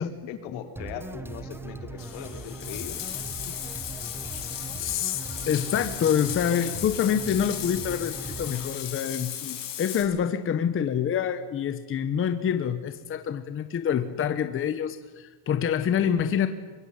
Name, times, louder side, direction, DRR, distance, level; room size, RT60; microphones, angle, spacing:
voice 1, 0.0-3.1, left 8 dB, 70° left, 6 dB, 4.2 m, -40 dB
sound 1, 0.8-8.8, right 3 dB, 5° right, 0.9 m, -39 dB
Bathtub (filling or washing), 2.0-10.0, left 11 dB, 40° left, 5.4 m, -36 dB
voice 2, 4.7-5.2 5.5-16.5, left 8 dB, 25° left, 9 dB, 1.2 m, -26 dB
25.0 x 22.5 x 9.6 m, 1.4 s
cardioid pair, 165°, 49 cm